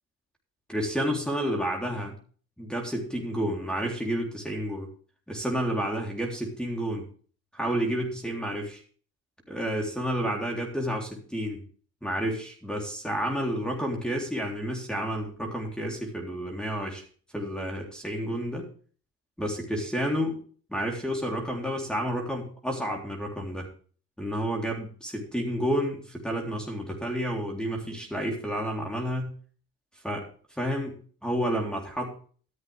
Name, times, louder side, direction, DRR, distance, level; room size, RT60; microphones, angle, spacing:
voice 1, 0.7-2.1 2.6-4.9 5.3-7.0 7.5-8.8 9.5-11.6 12.0-17.0 17.3-18.7 19.4-20.4 20.7-23.7 24.2-29.3 30.0-30.3 30.5-31.0 31.2-32.1, equal, 5° left, 0 dB, 3.6 m, -30 dB
13.0 x 11.0 x 3.4 m, 0.42 s
supercardioid pair, 80°, 31 cm